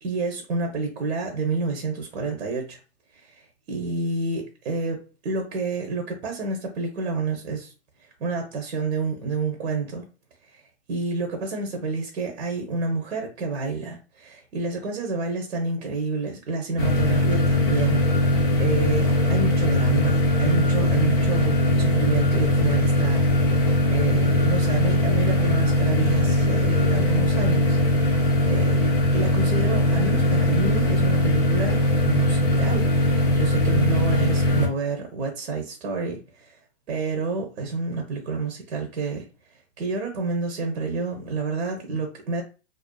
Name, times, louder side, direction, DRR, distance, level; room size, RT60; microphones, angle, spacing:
voice 1, 0.0-2.8 3.2-7.7 8.2-10.0 10.5-10.6 10.9-28.8 29.1-36.6 36.9-39.3 39.8-42.4, right 3 dB, 70° right, 0.8 m, -29 dB
sound 1, 16.8-34.7, left 1 dB, 20° left, 0.4 m, -20 dB
2.4 x 2.3 x 2.2 m
hypercardioid pair, 130°, 36 cm